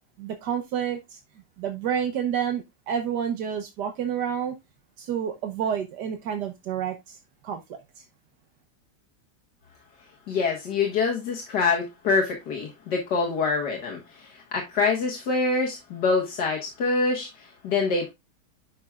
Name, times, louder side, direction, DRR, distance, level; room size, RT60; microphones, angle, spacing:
voice 1, 0.2-1.2 1.6-4.5 5.0-7.2 7.4-7.8, right 8 dB, 80° right, 1.6 m, -29 dB
voice 2, 10.3-18.1, left 4 dB, 80° left, 2.1 m, -25 dB
11.0 x 6.0 x 2.3 m
omnidirectional pair, 1.8 m